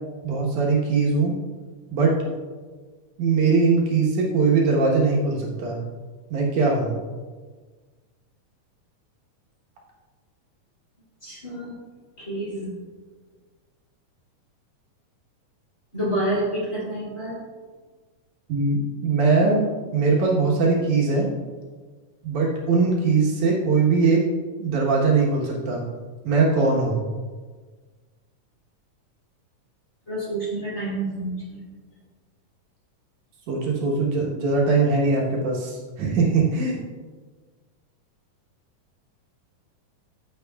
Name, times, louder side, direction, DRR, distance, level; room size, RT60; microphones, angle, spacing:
voice 1, 0.2-1.3 1.9-2.1 3.2-5.8 6.3-7.0 18.5-19.7 19.9-21.3 22.2-24.2 24.6-25.9 26.2-27.0 33.5-36.8, right 4 dB, 70° right, -3 dB, 2.5 m, -21 dB
voice 2, 11.2-11.8 12.2-12.7 15.9-17.4 30.1-31.6, right 1 dB, 25° left, -8 dB, 2.7 m, -28 dB
14.5 x 6.5 x 2.3 m, 1.4 s
omnidirectional pair, 3.8 m